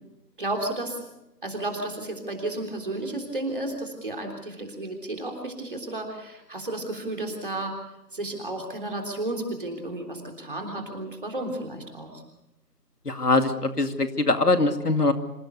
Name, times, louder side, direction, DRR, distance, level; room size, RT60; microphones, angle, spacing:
voice 1, 0.4-1.0 1.4-7.8 8.1-12.2, right 2 dB, 30° right, 2 dB, 3.5 m, -32 dB
voice 2, 13.1-15.1, left 2 dB, 65° left, 8 dB, 2.3 m, -22 dB
26.5 x 17.0 x 6.8 m, 0.93 s
figure-of-eight pair, 170°, 49 cm